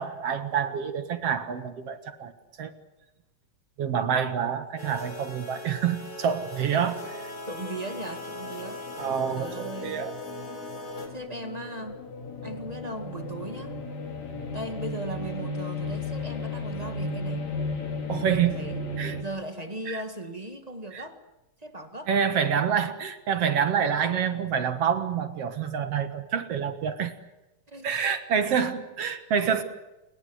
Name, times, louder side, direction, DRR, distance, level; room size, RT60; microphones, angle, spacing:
voice 1, 0.0-2.3 2.6-2.7 3.8-7.3 9.0-10.1 18.1-18.6 19.0-19.2 19.9-20.0 20.9-21.0 22.1-27.1 27.8-29.6, right 7 dB, 55° right, 9 dB, 2.3 m, -27 dB
sound 1, 4.8-11.1, left 1 dB, 30° left, 4.6 m, -40 dB
sound 2, 7.3-19.2, left 2 dB, 60° left, 4.0 m, -35 dB
voice 2, 7.5-10.0 11.1-12.0 12.4-13.7 14.5-17.4 18.3-18.8 19.2-21.2 21.6-22.1 27.7-27.9, right 1 dB, 20° right, 7 dB, 1.3 m, -38 dB
28.5 x 21.0 x 7.9 m, 0.99 s
omnidirectional pair, 3.7 m